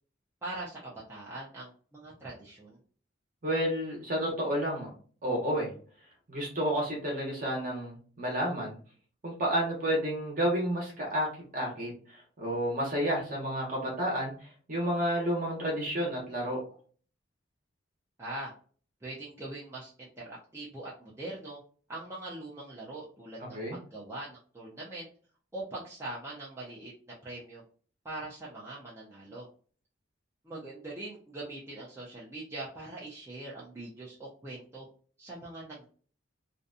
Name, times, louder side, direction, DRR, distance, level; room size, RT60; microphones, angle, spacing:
voice 1, 0.4-2.8 18.2-18.5 19.0-21.6 21.9-25.1 25.5-26.9 27.2-27.6 28.0-29.5 30.4-34.9 35.2-35.8, right 2 dB, 15° right, -7 dB, 0.5 m, -42 dB
voice 2, 3.4-4.9 5.2-5.7 6.3-8.7 9.2-11.3 11.5-16.6 23.5-23.8, equal, 45° right, -2 dB, 0.9 m, -30 dB
2.6 x 2.2 x 2.5 m, 0.42 s
head